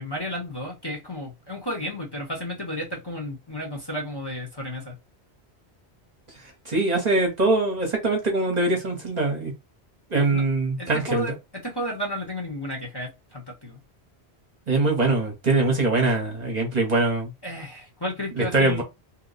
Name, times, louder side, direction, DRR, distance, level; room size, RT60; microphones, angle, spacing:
voice 1, 0.0-5.0 10.1-10.4 10.8-11.3 11.6-13.8 17.4-18.8, equal, 25° left, 0.9 m, -33 dB
voice 2, 6.7-9.5 10.1-11.3 14.7-17.3 18.4-18.8, right 2 dB, 40° right, 0.9 m, -23 dB
2.8 x 2.1 x 3.9 m
omnidirectional pair, 1.1 m